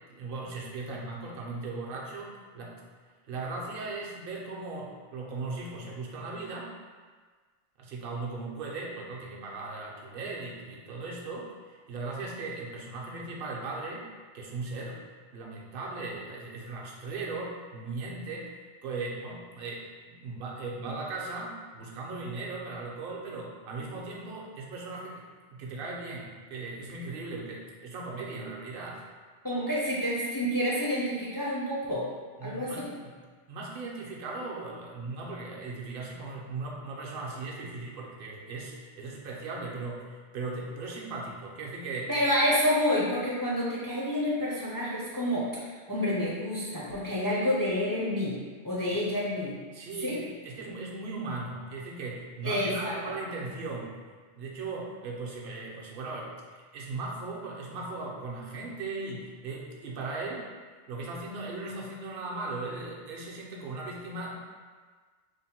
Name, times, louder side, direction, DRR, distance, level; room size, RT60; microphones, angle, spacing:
voice 1, 0.1-2.8 3.3-6.7 7.8-15.0 15.3-25.2 25.5-29.0 32.4-33.2 33.5-42.1 49.7-54.0 54.4-60.5 60.9-64.4, right 3 dB, 60° right, -2 dB, 0.8 m, -38 dB
voice 2, 29.4-32.1 32.4-32.9 42.1-48.4 48.6-49.5 50.0-50.2 52.4-52.9, equal, 30° left, -7 dB, 0.4 m, -28 dB
3.4 x 2.1 x 4.2 m, 1.5 s
omnidirectional pair, 1.1 m